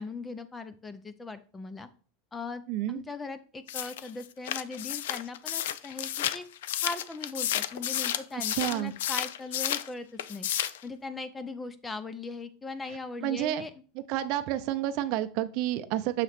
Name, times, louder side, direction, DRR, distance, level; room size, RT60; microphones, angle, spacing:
voice 1, 0.0-1.9 2.3-2.6 2.9-6.5 6.8-10.5 10.8-13.7, left 3 dB, 10° left, 12 dB, 0.5 m, -39 dB
voice 2, 2.7-3.0 8.3-8.9 13.2-13.7 14.0-16.2, right 13 dB, 50° right, 10 dB, 0.6 m, -30 dB
sound 1, 3.7-9.9 10.2-10.8, left 11 dB, 85° left, 0.4 m, -32 dB
6.6 x 3.0 x 5.8 m, 0.38 s
supercardioid pair, 150°, 0 cm